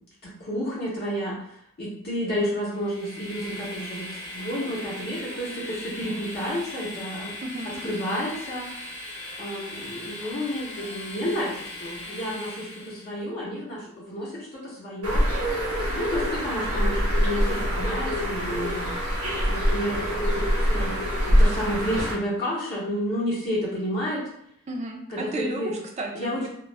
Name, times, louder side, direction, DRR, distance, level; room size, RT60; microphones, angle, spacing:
voice 1, 0.2-1.4 1.8-4.1 4.3-7.3 7.8-8.7 9.4-11.5 11.8-13.8 14.1-14.3 14.8-15.2 15.9-18.9 19.5-21.0 21.3-24.2 25.1-25.7 26.1-26.5, equal, 45° left, -8 dB, 0.7 m, -30 dB
Train, 2.7-13.2, left 1 dB, 85° left, 0.8 m, -39 dB
voice 2, 7.4-7.8 24.7-26.5, right 2 dB, 30° right, 1 dB, 0.4 m, -33 dB
Bird, 15.0-22.1, equal, 85° right, 0.9 m, -24 dB
2.2 x 2.0 x 3.2 m, 0.72 s
head